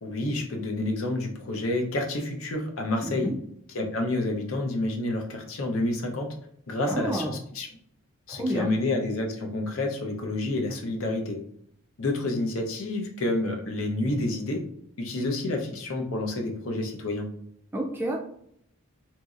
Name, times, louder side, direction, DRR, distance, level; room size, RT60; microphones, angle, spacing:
voice 1, 0.0-3.3 3.7-6.3 6.7-7.7 8.3-11.4 12.0-14.6 15.0-17.3, left 2 dB, 65° left, 2 dB, 0.6 m, -29 dB
voice 2, 3.0-3.3 6.9-7.3 8.3-8.7 17.7-18.2, right 1 dB, 10° right, 0 dB, 0.3 m, -29 dB
2.9 x 2.6 x 2.4 m, 0.68 s
head